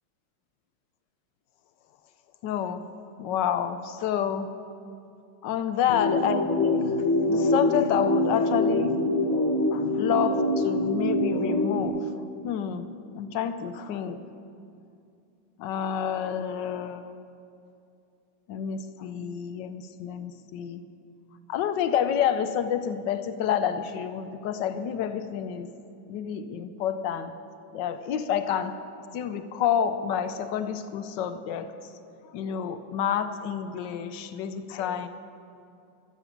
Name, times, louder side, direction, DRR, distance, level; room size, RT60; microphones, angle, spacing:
voice 1, 2.4-2.9 3.2-4.5 5.4-9.0 9.7-12.1 12.4-14.2 15.6-17.2 18.5-20.8 21.5-25.7 26.1-27.3 27.7-28.7 29.1-31.9 32.2-35.1, left 8 dB, 70° left, 10 dB, 1.2 m, -29 dB
sound 1, 5.9-11.9, left 1 dB, 45° left, 1.2 m, -24 dB
14.0 x 6.9 x 7.2 m, 2.5 s
omnidirectional pair, 2.2 m